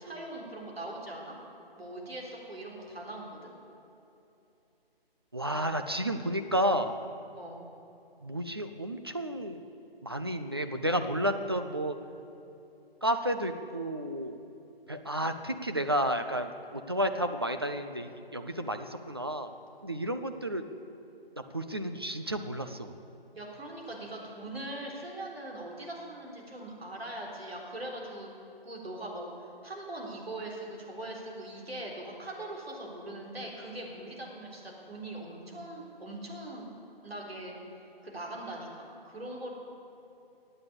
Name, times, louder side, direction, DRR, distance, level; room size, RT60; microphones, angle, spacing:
voice 1, 0.0-1.3 1.8-3.5 7.3-7.6 23.3-28.3 28.6-29.3 29.6-36.7 37.0-37.6 38.0-38.7 39.1-39.5, right 1 dB, 80° right, -1 dB, 3.8 m, -41 dB
voice 2, 5.3-7.0 8.2-9.6 10.0-12.0 13.0-14.4 14.9-19.5 19.8-20.6 21.4-22.9, equal, 25° right, 7 dB, 0.4 m, -31 dB
15.5 x 8.8 x 8.6 m, 2.7 s
figure-of-eight pair, 150°, 30 cm